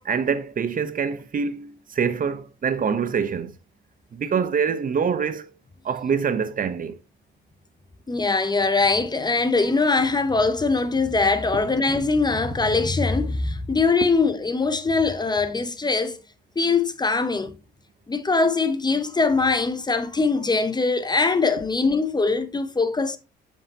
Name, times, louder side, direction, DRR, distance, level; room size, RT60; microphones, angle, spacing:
voice 1, 0.0-3.5 4.1-5.5 5.8-7.0, right 6 dB, 45° right, 0.8 m, -25 dB
voice 2, 8.1-16.2 16.6-17.5 18.1-23.2, left 3 dB, 20° left, 0.8 m, -22 dB
7.3 x 5.5 x 2.8 m
cardioid pair, 90°, 20 cm